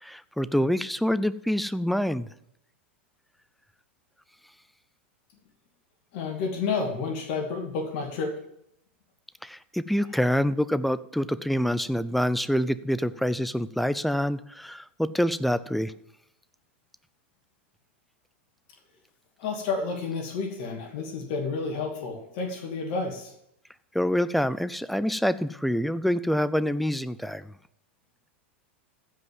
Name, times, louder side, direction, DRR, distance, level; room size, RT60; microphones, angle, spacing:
voice 1, 0.0-2.3 9.4-16.0 23.9-27.5, equal, ahead, 17 dB, 0.5 m, -26 dB
voice 2, 6.1-8.4 19.4-23.3, left 4 dB, 55° left, 3 dB, 2.6 m, -30 dB
15.0 x 5.4 x 7.3 m, 0.75 s
hypercardioid pair, 95°, 7 cm